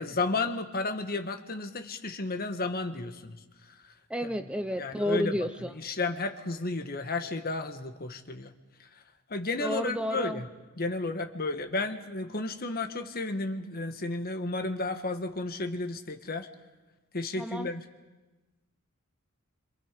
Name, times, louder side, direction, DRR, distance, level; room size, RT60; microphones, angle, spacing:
voice 1, 0.0-3.4 4.2-4.3 4.8-8.5 9.3-10.5 10.8-16.5 17.1-17.8, left 3 dB, 45° left, 7 dB, 1.4 m, -33 dB
voice 2, 4.1-5.7 9.6-10.4 17.4-17.7, equal, 5° right, 8 dB, 0.7 m, -31 dB
28.0 x 26.0 x 5.2 m, 1.2 s
head